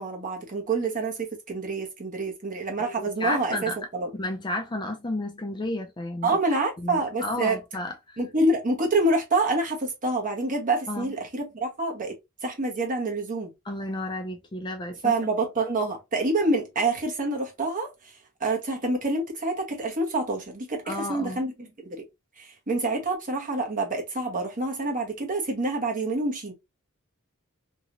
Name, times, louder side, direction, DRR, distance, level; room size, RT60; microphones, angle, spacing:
voice 1, 0.0-4.1 6.2-7.6 8.2-12.1 12.4-13.5 15.0-17.9 18.4-22.0 22.4-26.5, right 2 dB, 40° right, 1.1 m, -27 dB
voice 2, 2.8-3.8 4.2-6.3 6.8-7.9 10.9-11.1 13.7-15.1 20.9-21.4, left 2 dB, 20° left, 0.5 m, -32 dB
2.9 x 2.9 x 2.5 m
head